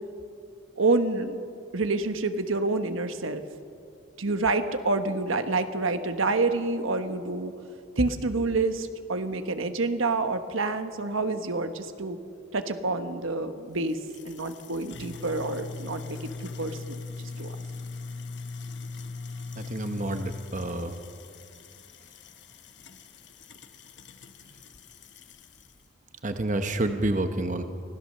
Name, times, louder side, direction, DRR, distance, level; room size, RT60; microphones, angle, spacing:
voice 1, 0.8-1.4 1.7-3.4 4.2-7.5 8.0-12.2 12.5-14.0 14.2-16.2 16.6-16.8 17.4-17.5, right 3 dB, 80° right, 8 dB, 1.2 m, -27 dB
sound 1, 13.8-25.8, left 4 dB, 55° left, 1.2 m, -41 dB
voice 2, 19.5-21.0 26.2-27.6, right 2 dB, 35° right, 7 dB, 0.9 m, -29 dB
25.0 x 16.5 x 6.6 m, 2.4 s
head